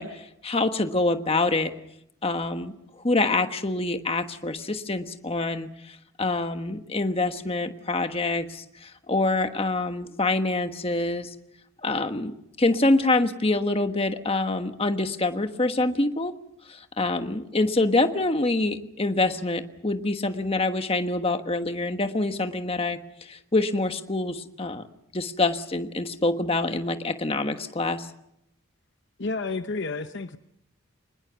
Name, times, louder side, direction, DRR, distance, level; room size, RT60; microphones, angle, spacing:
voice 1, 0.0-1.7 2.2-11.3 11.8-16.3 16.7-24.8 25.1-28.1, left 2 dB, 25° left, 7 dB, 1.3 m, -26 dB
voice 2, 29.2-30.4, left 3 dB, 55° left, 9 dB, 0.9 m, -30 dB
25.0 x 20.5 x 7.0 m, 0.79 s
head